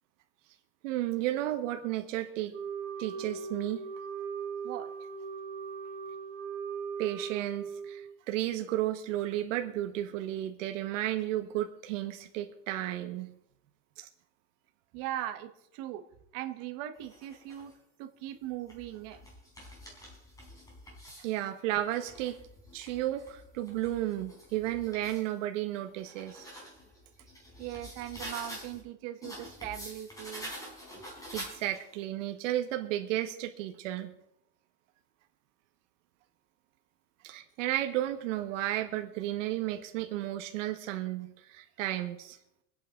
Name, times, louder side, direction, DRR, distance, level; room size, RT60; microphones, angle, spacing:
voice 1, 0.8-2.5 3.0-3.8 7.0-13.3 14.0-14.1 21.2-22.4 22.7-26.5 31.3-34.1 37.2-42.4, right 14 dB, 85° right, 5 dB, 1.6 m, -33 dB
Wind instrument woodwind instrument, 2.5-8.1, right 6 dB, 30° right, 3.8 m, -39 dB
voice 2, 14.9-16.0 16.3-17.7 18.0-19.2 27.6-30.5, right 13 dB, 50° right, 7 dB, 1.4 m, -39 dB
sound 1, 16.9-17.7 18.4-21.4 21.8-25.3 25.7-28.8 29.2-32.0, equal, 10° left, 4.0 m, -47 dB
25.5 x 9.0 x 3.8 m, 0.78 s
supercardioid pair, 175°, 37 cm